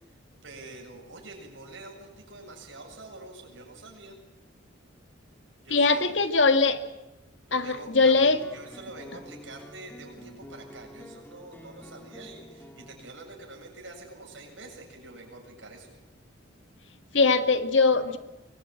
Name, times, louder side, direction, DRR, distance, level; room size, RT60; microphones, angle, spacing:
voice 1, 0.4-4.2 5.6-6.1 7.5-15.9, right 2 dB, 80° right, 1 dB, 7.4 m, -46 dB
voice 2, 5.7-6.8 7.5-8.4 17.1-18.2, left 4 dB, 75° left, 9 dB, 1.8 m, -21 dB
sound 1, 8.0-13.1, equal, 10° left, 2.3 m, -48 dB
24.0 x 20.5 x 9.0 m, 0.99 s
head